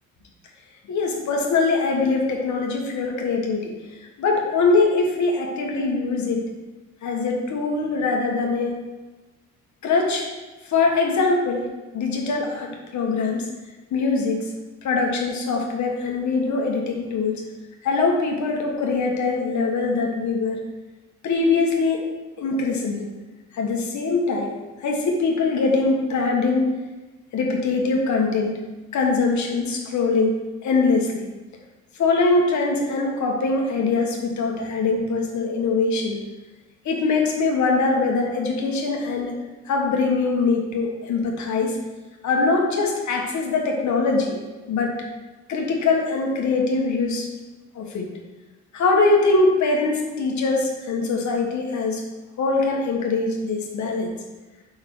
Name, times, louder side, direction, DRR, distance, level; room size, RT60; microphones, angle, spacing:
voice 1, 0.9-3.7 4.2-6.4 7.0-8.8 9.8-10.3 10.7-11.7 11.9-13.5 13.9-14.5 14.8-17.3 17.8-20.6 21.2-22.0 22.4-23.0 23.5-24.5 24.8-26.7 27.3-28.6 28.9-30.3 30.6-31.2 32.0-36.2 36.8-39.3 39.6-41.8 42.2-44.4 44.7-44.9 45.5-47.3 47.7-48.1 48.7-52.0 52.4-54.1, left 3 dB, 70° left, 0 dB, 1.4 m, -22 dB
5.5 x 4.8 x 6.0 m, 1.2 s
cardioid pair, 90°, 30 cm